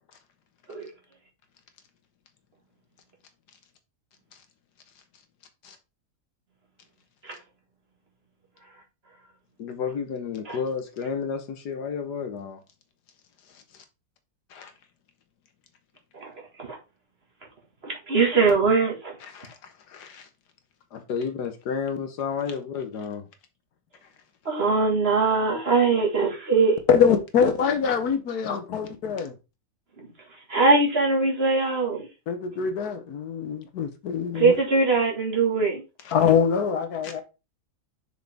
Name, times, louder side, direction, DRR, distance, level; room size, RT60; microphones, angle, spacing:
voice 1, 9.6-12.6 13.5-13.8 14.5-14.7 19.3-20.3 20.9-23.3 28.4-28.8 36.0-36.1 37.0-37.1, left 6 dB, 90° left, 1.7 m, -32 dB
voice 2, 17.8-19.1 24.5-26.8 30.0-30.1 30.5-32.1 34.3-35.8, right 4 dB, 40° right, 2.0 m, -22 dB
voice 3, 26.9-29.3 32.3-34.6 36.1-37.2, left 7 dB, 75° left, 1.4 m, -23 dB
6.3 x 4.9 x 3.4 m
omnidirectional pair, 1.7 m